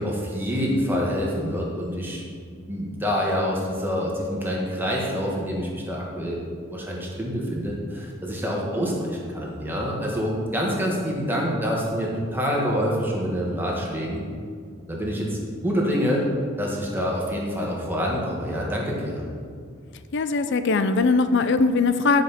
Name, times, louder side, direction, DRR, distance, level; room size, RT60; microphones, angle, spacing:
voice 1, 0.0-2.2 2.7-6.4 6.7-14.2 14.9-15.4 15.6-16.3 16.6-19.3, equal, 10° right, -3 dB, 1.6 m, -26 dB
voice 2, 20.1-22.2, left 3 dB, 60° left, 10 dB, 0.5 m, -20 dB
10.5 x 5.2 x 5.9 m, 2.1 s
head